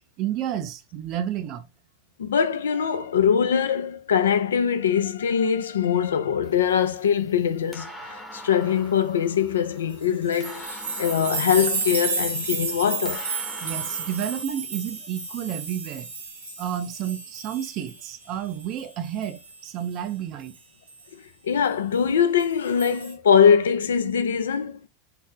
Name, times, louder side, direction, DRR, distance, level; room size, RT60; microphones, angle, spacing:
voice 1, 0.2-1.7 13.6-16.1 16.6-20.5, right 10 dB, 45° right, 0.5 m, -31 dB
voice 2, 2.2-13.2 21.1-24.8, left 7 dB, 80° left, 0.4 m, -22 dB
sound 1, 6.4-14.4, equal, 5° left, 0.8 m, -44 dB
sound 2, 9.9-18.2 18.6-19.7 20.9-21.0 22.4-23.1, right 4 dB, 85° right, 1.0 m, -32 dB
2.8 x 2.0 x 3.6 m
hypercardioid pair, 95°, 0 cm